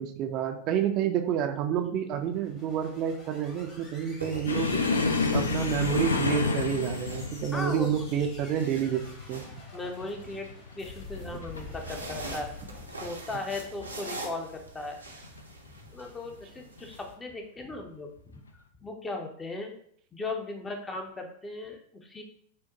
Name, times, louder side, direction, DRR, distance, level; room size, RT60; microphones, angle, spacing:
voice 1, 0.0-4.8 5.3-9.0 9.3-9.4, right 9 dB, 40° right, 5 dB, 0.4 m, -29 dB
sound 1, 2.2-14.5, left 2 dB, 35° left, 1.3 m, -48 dB
sound 2, 2.8-3.1 4.0-5.1 6.6-7.8 8.2-10.3 11.5-17.1, right 2 dB, 85° right, 0.7 m, -43 dB
sound 3, 4.5-11.7 12.0-12.4 12.7-12.9 13.7-14.3 15.2-15.4 16.8-17.0, left 4 dB, 75° left, 0.4 m, -30 dB
voice 2, 7.5-7.9 9.7-10.5 10.7-12.6 13.0-15.0 15.9-18.1 18.8-19.7 20.1-22.2, left 2 dB, 15° left, 3 dB, 0.7 m, -37 dB
6.2 x 2.1 x 2.9 m, 0.63 s
figure-of-eight pair, 90°, 0 cm